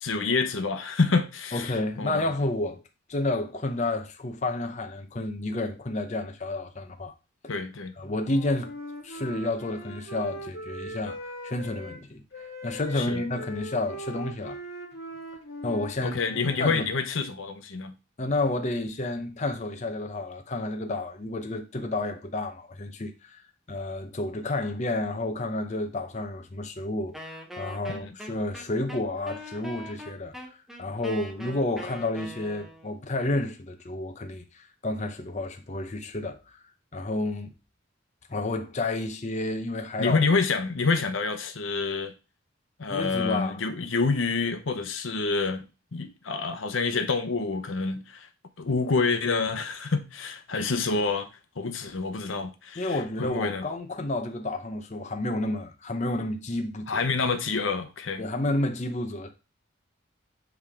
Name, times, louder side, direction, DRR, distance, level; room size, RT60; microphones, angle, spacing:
voice 1, 0.0-2.3 7.5-7.9 12.9-13.2 16.0-17.9 27.9-28.0 40.0-42.1 42.8-45.7 45.9-48.3 48.6-51.3 51.6-53.6 56.9-58.2, left 4 dB, 85° left, 0.8 m, -27 dB
voice 2, 1.5-2.8 3.1-7.1 7.4-7.6 8.0-8.7 9.0-12.2 12.6-14.6 15.6-16.9 18.2-23.4 23.7-30.3 30.8-34.4 34.8-36.4 36.9-37.5 38.3-40.2 42.9-43.6 52.8-57.0 58.2-59.3, left 2 dB, 35° left, 0.7 m, -30 dB
Wind instrument woodwind instrument, 8.2-12.0 12.3-16.8, equal, 60° left, 2.0 m, -40 dB
Wind instrument woodwind instrument 2, 27.1-33.0, equal, ahead, 0.8 m, -42 dB
8.0 x 3.3 x 3.5 m
head